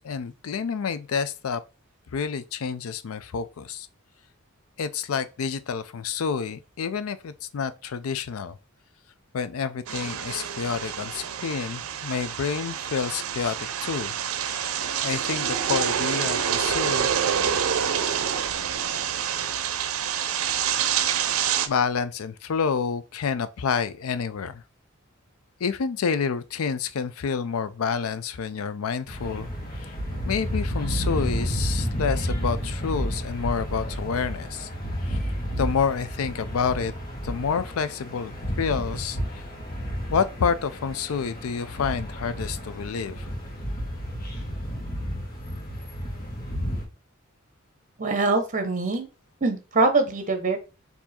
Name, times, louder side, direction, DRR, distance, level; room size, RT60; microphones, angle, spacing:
voice 1, 0.0-1.6 2.1-3.9 4.8-8.6 9.3-14.1 14.4-17.1 21.7-24.6 25.6-29.5 29.8-30.0 30.2-34.7 35.0-35.2 35.6-36.9 37.2-39.4 40.1-43.3, left 6 dB, 90° left, 0.4 m, -28 dB
sound 1, 9.9-21.7, right 8 dB, 85° right, 0.5 m, -27 dB
sound 2, 29.1-46.8, equal, 45° left, 1.4 m, -31 dB
voice 2, 48.0-49.1 49.4-50.6, right 3 dB, 40° right, 0.9 m, -23 dB
4.6 x 2.7 x 4.2 m
head